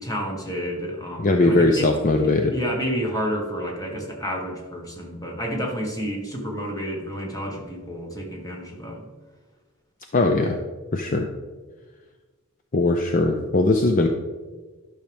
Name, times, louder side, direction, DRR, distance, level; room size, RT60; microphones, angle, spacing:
voice 1, 0.0-1.9 2.5-9.1, equal, 15° left, 0 dB, 1.4 m, -30 dB
voice 2, 1.2-2.5 10.1-10.6 10.9-11.3 12.7-14.1, left 2 dB, 40° left, 4 dB, 0.5 m, -20 dB
11.5 x 6.3 x 3.5 m, 1.4 s
head